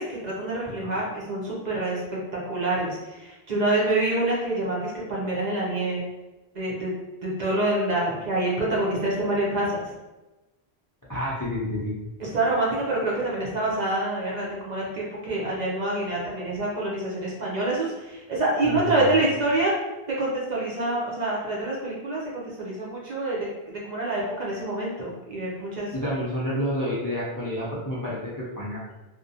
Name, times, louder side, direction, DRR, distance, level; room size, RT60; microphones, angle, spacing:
voice 1, 0.0-2.0 2.5-6.0 6.5-6.9 7.2-9.9 12.2-19.7 20.2-25.9, right 2 dB, 50° right, -5 dB, 0.6 m, -26 dB
voice 2, 0.6-1.0 11.1-11.9 18.6-19.2 25.9-28.8, equal, 30° left, -8 dB, 0.4 m, -29 dB
2.5 x 2.1 x 2.6 m, 1.1 s
omnidirectional pair, 1.1 m